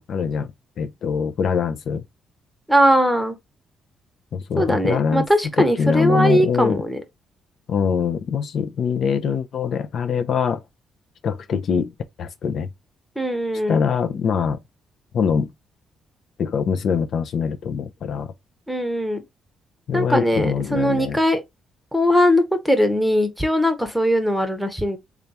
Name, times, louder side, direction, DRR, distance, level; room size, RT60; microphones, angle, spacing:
voice 1, 0.0-2.0 4.3-5.3 5.6-6.8 7.7-10.6 11.2-11.9 12.2-12.7 13.7-14.6 15.1-15.5 16.4-18.3 19.9-21.2, left 6 dB, 65° left, 0.5 m, -23 dB
voice 2, 2.7-3.4 4.6-7.0 13.2-13.8 18.7-19.2 19.9-21.4 21.9-25.0, equal, ahead, 0.9 m, -20 dB
3.4 x 2.4 x 4.1 m
cardioid pair, 90°, 0 cm